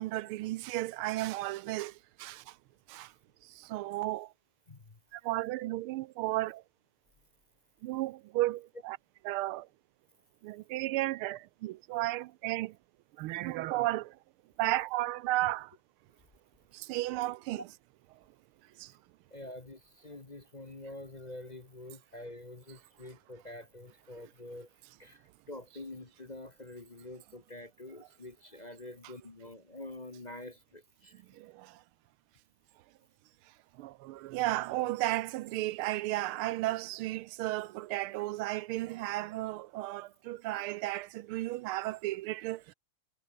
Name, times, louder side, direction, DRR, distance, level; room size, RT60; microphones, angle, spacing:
voice 1, 0.0-2.6 2.9-3.1 3.4-4.3 5.1-6.6 7.8-9.0 9.2-9.7 10.4-12.8 13.2-14.2 14.6-15.7 16.7-17.6 18.8-18.9 31.1-31.8 33.7-42.7, right 17 dB, 85° right, 1.5 m, -34 dB
voice 2, 4.7-5.0 19.3-24.7 25.0-31.2, left 2 dB, 25° left, 1.2 m, -47 dB
omnidirectional pair, 2.4 m